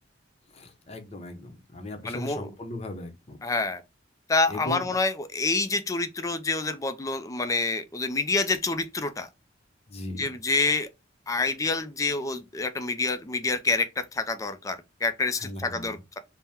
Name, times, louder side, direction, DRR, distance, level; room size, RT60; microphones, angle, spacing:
voice 1, 0.5-3.4 4.5-5.0 9.9-10.3 15.4-16.0, left 1 dB, 35° left, 0.7 m, -38 dB
voice 2, 2.0-2.5 3.4-3.8 4.3-9.3 10.2-10.9 11.3-16.2, left 3 dB, 20° left, 0.4 m, -27 dB
3.5 x 2.1 x 4.2 m
head